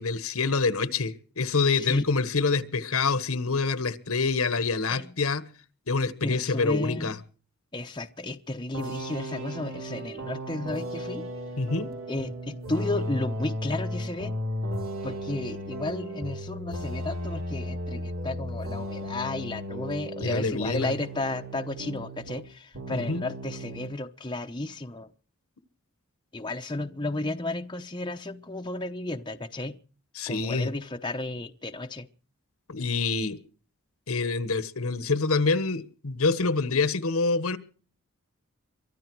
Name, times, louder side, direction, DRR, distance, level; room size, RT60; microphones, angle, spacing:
voice 1, 0.0-5.4 5.9-7.2 11.6-11.9 20.2-20.9 22.9-23.2 30.2-30.7 32.7-33.4 34.1-37.6, left 4 dB, 75° left, 13 dB, 1.2 m, -26 dB
voice 2, 1.7-2.1 4.9-5.1 6.2-7.2 7.7-11.3 12.1-14.4 15.0-25.1 26.3-29.8 30.3-32.1, left 2 dB, 20° left, 6 dB, 0.8 m, -33 dB
sound 1, 8.7-22.5 22.7-23.9, equal, 65° right, 3.2 m, -35 dB
23.5 x 13.0 x 4.7 m, 0.40 s
head